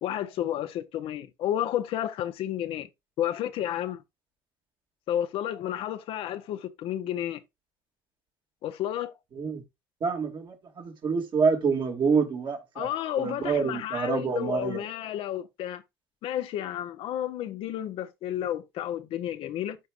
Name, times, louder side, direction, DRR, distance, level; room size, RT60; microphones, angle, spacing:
voice 1, 0.0-2.9 3.2-4.0 5.1-7.4 8.6-9.1 12.7-15.8 16.2-19.8, left 11 dB, 65° left, 0.9 m, -31 dB
voice 2, 10.0-12.9 13.2-14.8, right 5 dB, 50° right, 2.5 m, -27 dB
13.0 x 4.7 x 2.5 m
hypercardioid pair, 60°, 10 cm